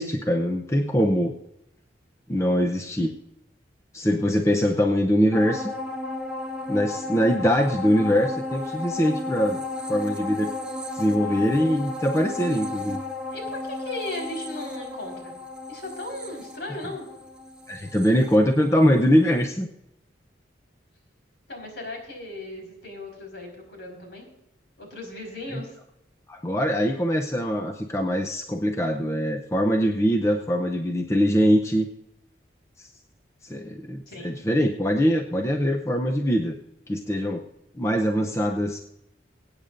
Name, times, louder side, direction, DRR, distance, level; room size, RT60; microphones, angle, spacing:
voice 1, 0.0-1.3 2.3-3.1 3.9-5.7 6.7-9.6 9.9-10.5 10.9-13.0 17.7-19.7 25.5-25.6 26.3-31.9 32.8-32.9 33.4-36.6 36.9-37.4 37.8-38.8, equal, 15° left, 3 dB, 0.6 m, -23 dB
sound 1, 5.3-19.0 19.4-19.5, left 2 dB, 5° right, 1.2 m, -34 dB
voice 2, 13.3-15.3 15.7-17.1 21.5-24.3 24.8-25.8 34.1-34.3, left 1 dB, 65° left, 1 dB, 4.7 m, -36 dB
23.5 x 8.9 x 2.6 m, 0.81 s
head